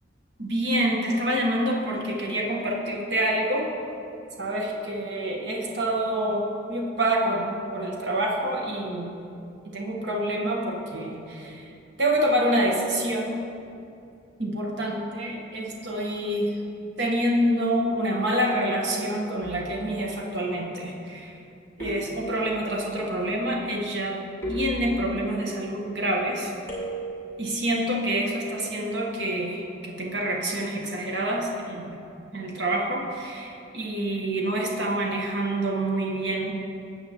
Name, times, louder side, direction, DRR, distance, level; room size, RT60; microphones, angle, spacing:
voice 1, 0.4-3.7 4.4-9.1 9.6-11.7 12.0-13.4 14.4-16.5 17.0-21.3 21.8-24.2 24.5-26.5 27.4-31.9 32.3-36.5, right 1 dB, 60° right, -1 dB, 1.1 m, -27 dB
sound 1, 19.4-19.9 21.8-22.7 24.4-25.4 26.7-27.4, right 1 dB, 15° left, 2.2 m, -35 dB
14.0 x 7.7 x 2.9 m, 2.5 s
head